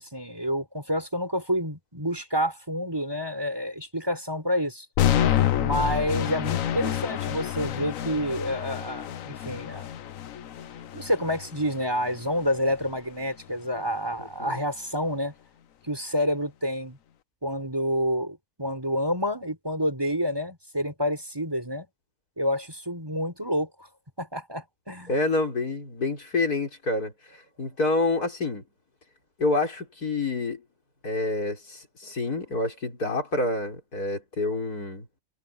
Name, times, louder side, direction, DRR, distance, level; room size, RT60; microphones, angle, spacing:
voice 1, 0.0-4.9 5.6-9.9 10.9-15.3 15.9-17.0 17.4-21.9 22.4-23.9 24.2-25.1, equal, 15° right, 4.3 m, -28 dB
sound 1, 5.0-13.0, left 10 dB, 65° left, 1.2 m, -28 dB
voice 2, 14.2-14.6 25.1-28.6 29.4-30.6 31.0-35.1, left 2 dB, 80° left, 5.6 m, -28 dB
omnidirectional pair, 1.6 m